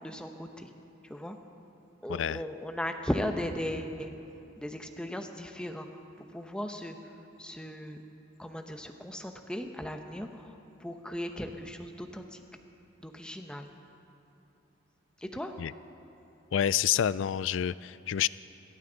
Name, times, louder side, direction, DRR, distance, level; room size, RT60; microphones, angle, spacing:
voice 1, 0.0-0.7 1.0-1.4 2.0-4.1 4.6-8.0 8.4-12.4 13.0-13.7 15.2-15.6, left 1 dB, 5° left, 5 dB, 0.8 m, -37 dB
voice 2, 2.1-2.4 15.6-15.7 16.5-18.3, left 10 dB, 75° left, 18 dB, 0.3 m, -28 dB
26.0 x 13.0 x 3.9 m, 2.8 s
head